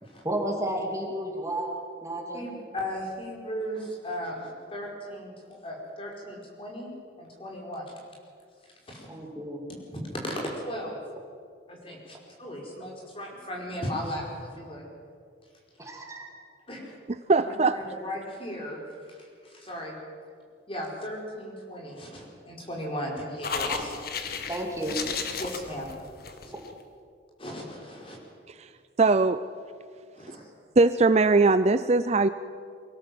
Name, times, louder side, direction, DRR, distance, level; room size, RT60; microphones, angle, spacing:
voice 1, 0.2-1.7 2.0-2.4 9.1-9.6 15.8-16.3 23.7-23.8 24.5-25.0 26.5-26.6, right 1 dB, 15° right, 0 dB, 2.6 m, -32 dB
voice 2, 2.3-6.9 7.2-8.0 8.9-9.1 9.7-11.0 11.7-14.8 16.7-16.9 17.3-18.8 19.1-19.9 20.7-23.9 25.4-25.9 26.4-26.5 27.4-28.2 30.1-30.5, equal, 30° left, -1 dB, 5.0 m, -36 dB
voice 3, 17.3-17.8 28.6-28.7 29.0-29.4 30.8-32.3, right 3 dB, 35° right, 12 dB, 0.4 m, -20 dB
sound 1, 23.4-26.7, left 5 dB, 50° left, 1.6 m, -33 dB
24.0 x 17.0 x 7.8 m, 2.2 s
head